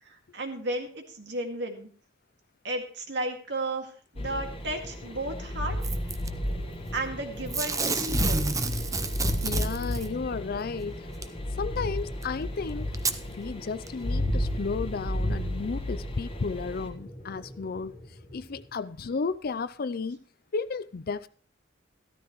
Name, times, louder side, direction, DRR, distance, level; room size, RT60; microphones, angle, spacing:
voice 1, 0.0-1.9 2.6-5.8 6.9-8.5, right 2 dB, 65° right, 2.2 m, -34 dB
sound 1, 4.2-18.4, left 1 dB, 30° left, 1.4 m, -33 dB
Packing tape duct tape / Tearing, 5.8-6.3 7.5-10.1 11.2-11.3 12.2-12.3 12.9-13.2 13.9-14.0, right 4 dB, 20° right, 0.7 m, -30 dB
voice 2, 9.4-11.1 11.6-12.9 13.3-18.0 18.3-20.2 20.5-21.3, left 4 dB, 50° left, 0.5 m, -33 dB
14.0 x 13.0 x 3.1 m
head